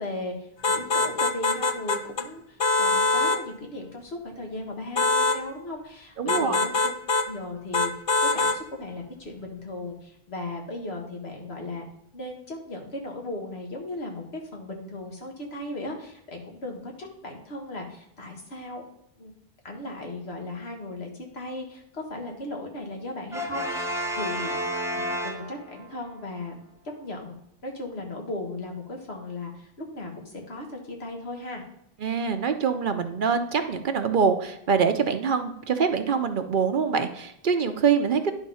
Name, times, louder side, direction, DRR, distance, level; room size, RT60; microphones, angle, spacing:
voice 1, 0.0-6.9 7.3-7.9 8.3-11.9 12.1-18.8 19.2-19.3 19.6-24.5 24.9-26.6 27.0-27.3 27.6-31.6, left 2 dB, 85° left, 1 dB, 1.8 m, -37 dB
sound 1, 0.6-2.3 2.6-3.4 4.9-5.4 6.3-7.3 7.7-8.6, left 3 dB, 50° left, 0.3 m, -23 dB
voice 2, 6.2-6.5 32.0-38.3, right 6 dB, 55° right, 8 dB, 0.8 m, -24 dB
Brass instrument, 23.3-26.0, equal, 5° right, 0.7 m, -31 dB
10.5 x 3.7 x 5.5 m, 0.77 s
omnidirectional pair, 1.0 m